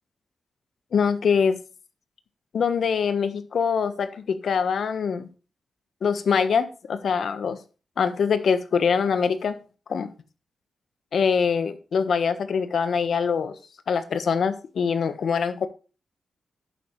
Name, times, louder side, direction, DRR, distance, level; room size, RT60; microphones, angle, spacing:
voice 1, 0.9-1.6 2.5-5.3 6.0-7.6 8.0-9.6 9.9-10.1 11.1-13.5 13.9-15.7, left 6 dB, 70° left, 10 dB, 1.3 m, -23 dB
11.0 x 8.4 x 3.2 m, 0.34 s
wide cardioid pair, 120°, 0 cm